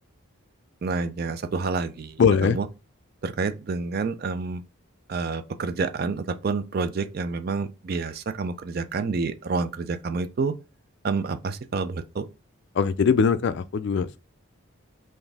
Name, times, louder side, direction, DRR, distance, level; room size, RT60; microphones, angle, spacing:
voice 1, 0.8-2.2 2.5-2.6 3.2-4.6 5.1-10.6 11.0-12.3, right 4 dB, 45° right, 0.4 m, -28 dB
voice 2, 2.2-2.6 12.7-14.2, left 6 dB, 55° left, 0.3 m, -21 dB
4.0 x 2.6 x 3.4 m
head